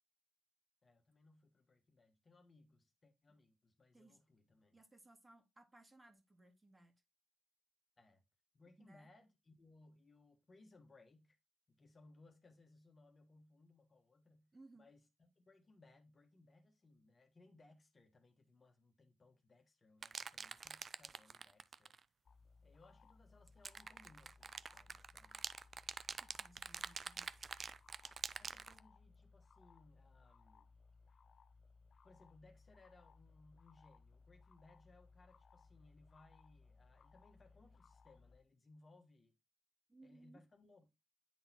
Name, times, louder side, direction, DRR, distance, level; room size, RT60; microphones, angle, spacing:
voice 1, 0.8-4.8 8.0-8.2 8.5-11.4 11.7-22.0 22.6-25.5 28.4-30.7 32.0-39.4 40.0-40.9, left 2 dB, 40° left, 1.3 m, -66 dB
voice 2, 4.7-7.0 8.8-9.1 14.5-14.9 26.2-27.3 39.9-40.4, right 2 dB, 20° right, 1.8 m, -63 dB
sound 1, 20.0-22.0 23.5-28.8, right 5 dB, 45° right, 0.4 m, -46 dB
sound 2, 22.3-38.4, left 4 dB, 55° left, 0.6 m, -65 dB
9.5 x 3.9 x 2.9 m
supercardioid pair, 60°, 0 cm